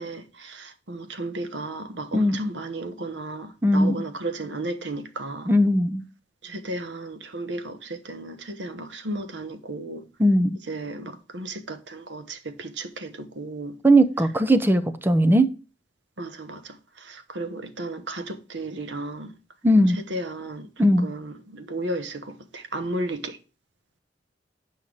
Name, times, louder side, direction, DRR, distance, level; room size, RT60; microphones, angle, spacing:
voice 1, 0.0-5.5 6.4-10.1 10.7-13.8 14.5-14.6 16.2-19.4 19.9-20.7 21.0-23.4, right 2 dB, 85° right, 1.1 m, -34 dB
voice 2, 3.6-4.0 5.5-6.0 10.2-10.6 13.8-15.5 19.6-20.0 20.8-21.1, equal, 10° right, 0.6 m, -19 dB
8.2 x 5.6 x 4.8 m
head